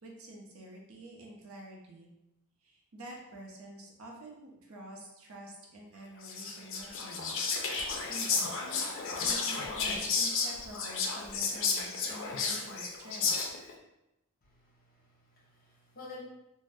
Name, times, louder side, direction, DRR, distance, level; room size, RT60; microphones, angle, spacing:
voice 1, 0.0-2.1 2.6-7.4 7.7-13.3, right 1 dB, 75° right, -1 dB, 0.6 m, -48 dB
Whispering, 6.2-13.7, left 5 dB, 60° left, 0.4 m, -32 dB
voice 2, 14.4-16.2, left 3 dB, 45° left, -3 dB, 0.8 m, -51 dB
2.5 x 2.1 x 3.4 m, 0.90 s
head